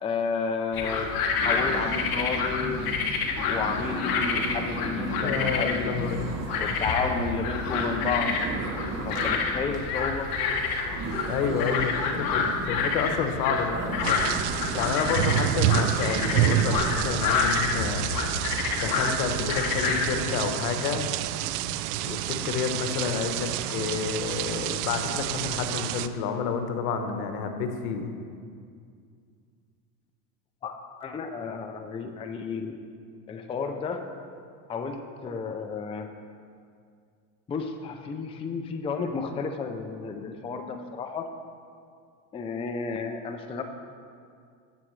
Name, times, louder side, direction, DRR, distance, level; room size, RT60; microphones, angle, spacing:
voice 1, 0.0-2.9 3.5-6.1 6.6-8.3 9.0-10.3 30.6-32.8 33.3-34.1 34.7-36.1 37.5-41.3 42.3-43.6, left 5 dB, 15° left, 5 dB, 0.4 m, -32 dB
sound 1, 0.7-20.2, left 5 dB, 45° left, 1.2 m, -29 dB
sound 2, 1.4-16.7, right 3 dB, 35° right, 1.2 m, -37 dB
voice 2, 5.1-6.3 11.3-14.2 14.7-18.1 18.7-21.1 22.0-28.1, left 6 dB, 75° left, 6 dB, 1.1 m, -30 dB
sound 3, 14.0-26.1, right 12 dB, 75° right, 0.5 m, -29 dB
14.5 x 7.2 x 3.2 m, 2.3 s
supercardioid pair, 110°, 47 cm